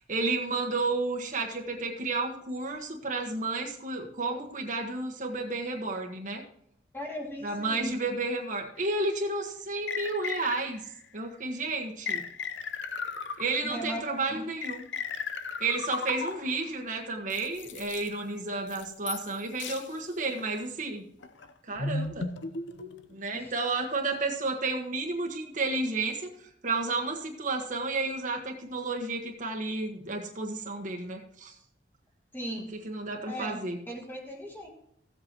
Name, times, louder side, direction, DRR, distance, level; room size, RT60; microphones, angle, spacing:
voice 1, 0.1-6.4 7.4-10.8 11.1-12.2 13.4-14.8 15.6-21.1 21.7-22.3 23.1-26.3 26.6-31.5 32.8-33.8, right 3 dB, 45° right, 1 dB, 1.4 m, -31 dB
voice 2, 6.9-7.9 13.6-14.0 14.3-14.4 23.3-23.6 32.3-32.7 33.2-33.6 33.9-34.7, equal, 10° left, 0 dB, 2.3 m, -37 dB
sound 1, 8.8-8.9 9.9-10.9 12.1-13.8 14.6-16.6 17.3-18.1 18.7-19.3 19.6-19.9 20.4-20.6 21.2-23.2, left 4 dB, 80° left, 0.8 m, -36 dB
15.5 x 8.1 x 3.0 m, 0.71 s
head